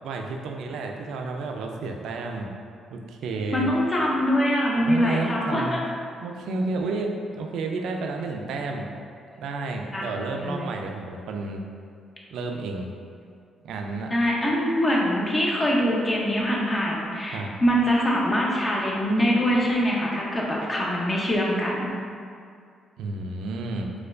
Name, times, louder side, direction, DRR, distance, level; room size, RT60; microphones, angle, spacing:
voice 1, 0.0-2.5 2.9-3.7 4.9-5.8 6.2-8.9 9.4-11.6 12.3-12.9 13.6-14.1 17.3-17.5 23.0-23.9, right 3 dB, 80° right, 2 dB, 0.3 m, -31 dB
voice 2, 3.5-5.8 9.3-9.4 9.9-10.0 10.4-10.7 14.1-21.9, equal, 25° left, -3 dB, 0.7 m, -23 dB
4.3 x 2.3 x 2.4 m, 2.3 s
cardioid pair, 90°, 0 cm